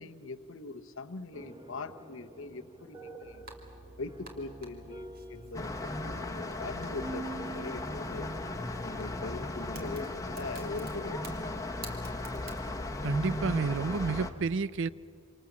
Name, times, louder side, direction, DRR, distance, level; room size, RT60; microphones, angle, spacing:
voice 1, 0.0-3.5 4.0-5.7 6.0-7.3 7.5-8.3 8.8-11.2, left 3 dB, 65° left, 1.0 m, -41 dB
sound 1, 1.3-8.7, right 2 dB, 20° right, 1.6 m, -47 dB
sound 2, 3.2-12.7, right 2 dB, 45° right, 3.0 m, -51 dB
sound 3, 5.5-14.3, left 2 dB, 15° left, 1.3 m, -36 dB
voice 2, 13.0-14.9, right 4 dB, 60° right, 0.6 m, -30 dB
27.5 x 26.5 x 7.2 m
head